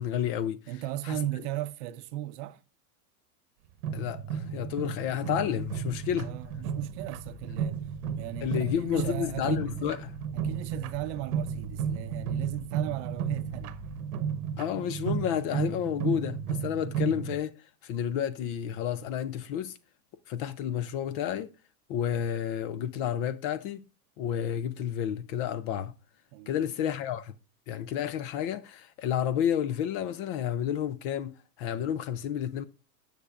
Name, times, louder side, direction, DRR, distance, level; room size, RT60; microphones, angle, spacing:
voice 1, 0.0-0.6 1.0-1.2 3.9-6.3 8.4-10.1 14.6-19.8 20.3-21.5 21.9-23.8 24.2-25.9 26.5-27.3 27.7-32.6, left 9 dB, 35° left, 0.5 m, -31 dB
voice 2, 0.7-2.6 6.2-7.8 8.2-9.8 10.3-13.7 26.3-26.6, right 14 dB, 45° right, 0.7 m, -36 dB
sound 1, 3.8-17.4, right 7 dB, 65° right, 1.1 m, -34 dB
sound 2, 5.4-14.0, left 7 dB, 55° left, 3.4 m, -49 dB
16.5 x 6.6 x 2.4 m
supercardioid pair, 145°, 48 cm